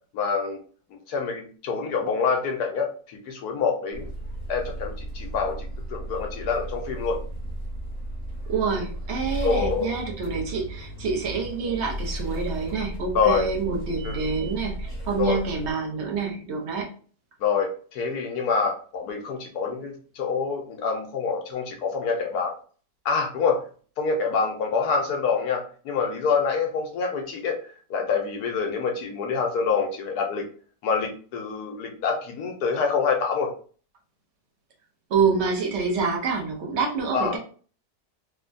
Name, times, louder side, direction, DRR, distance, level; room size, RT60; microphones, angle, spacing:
voice 1, 0.1-0.6 0.9-4.1 4.5-7.2 9.4-10.0 13.1-13.5 14.0-14.2 15.2-15.4 17.4-22.5 23.0-23.6 24.0-30.5 30.8-33.5 37.1-37.4, left 5 dB, 70° left, 2 dB, 1.1 m, -26 dB
sound 1, 3.9-15.7, right 1 dB, 20° left, 0.7 m, -35 dB
voice 2, 8.5-16.9 35.1-37.4, right 5 dB, 55° right, 1 dB, 0.8 m, -27 dB
3.3 x 2.1 x 2.5 m, 0.41 s
omnidirectional pair, 1.8 m